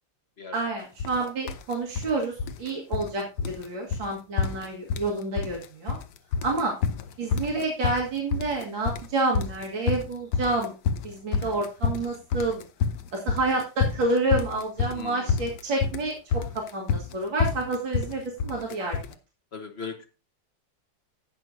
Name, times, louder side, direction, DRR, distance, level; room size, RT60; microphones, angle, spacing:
voice 1, 0.5-6.0 6.4-6.7 7.2-10.7 11.0-12.6 13.1-19.0, right 2 dB, 90° right, -2 dB, 2.5 m, -29 dB
sound 1, 1.0-1.2 1.5-2.1 2.4-3.1 3.4-3.6 3.9-4.1 4.4-5.1 5.4-6.0 6.3-19.1, left 6 dB, 70° left, 1.3 m, -28 dB
voice 2, 14.9-15.3 19.5-20.1, left 5 dB, 40° left, 5 dB, 1.2 m, -38 dB
18.5 x 6.2 x 2.7 m, 0.31 s
omnidirectional pair, 2.0 m